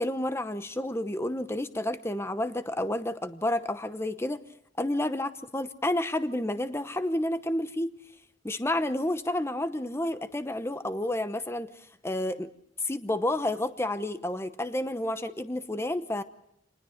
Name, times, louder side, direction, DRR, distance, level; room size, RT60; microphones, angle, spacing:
voice 1, 0.0-4.4 4.8-7.9 8.4-11.7 12.0-12.5 12.8-16.2, left 1 dB, 15° left, 11 dB, 0.9 m, -30 dB
27.0 x 20.0 x 6.5 m, 0.78 s
head